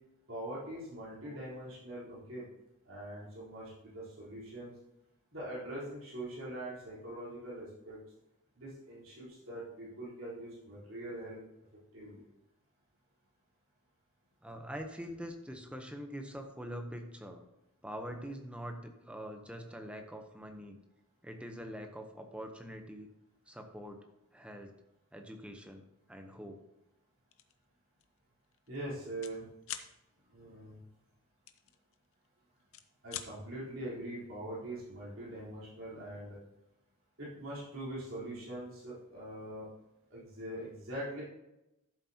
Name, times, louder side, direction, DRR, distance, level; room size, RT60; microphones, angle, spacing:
voice 1, 0.3-2.5 2.8-4.7 5.3-8.0 8.6-11.4 11.9-12.2 28.7-29.5 30.3-30.8 33.0-36.4 37.2-39.7 40.1-41.2, right 1 dB, 60° right, -8 dB, 3.9 m, -43 dB
voice 2, 14.4-17.4 17.8-20.8 21.2-23.1 23.5-24.1 24.3-24.7 25.1-25.8 26.1-26.6, equal, 5° right, 5 dB, 0.8 m, -44 dB
sound 1, 27.3-27.6 28.0-28.2 28.4-29.4 29.6-29.9 31.5-32.3 32.6-33.3, left 10 dB, 65° left, 0.7 m, -44 dB
12.5 x 7.4 x 2.9 m, 0.91 s
head